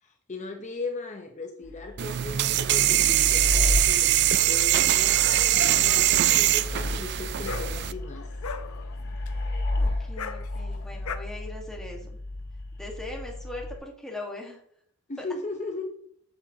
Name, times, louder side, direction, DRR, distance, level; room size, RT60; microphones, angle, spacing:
voice 1, 0.0-8.3 15.1-15.9, left 3 dB, 35° left, 3 dB, 0.8 m, -37 dB
sound 1, 1.6-13.8, left 2 dB, 50° left, 2.5 m, -33 dB
sound 2, 2.0-7.9, right 14 dB, 50° right, 0.3 m, -22 dB
Dog, 5.1-11.2, left 5 dB, 80° left, 0.7 m, -40 dB
voice 2, 9.8-12.2 12.8-14.6 15.2-15.3, left 2 dB, ahead, 0 dB, 1.5 m, -40 dB
8.4 x 7.9 x 2.8 m, 0.64 s
head